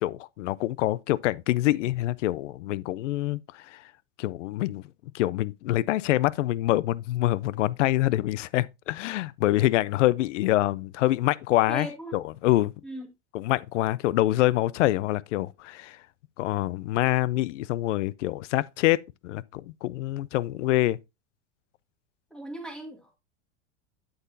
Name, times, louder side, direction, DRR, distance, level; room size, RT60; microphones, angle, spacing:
voice 1, 0.0-3.4 3.7-3.8 4.2-4.8 5.1-11.9 12.1-12.7 13.3-16.0 16.4-21.0, left 16 dB, 85° left, 0.5 m, -25 dB
voice 2, 11.7-12.2 12.8-13.1 22.3-23.2, right 1 dB, ahead, 2.2 m, -37 dB
8.1 x 8.0 x 2.6 m
supercardioid pair, 115°, 36 cm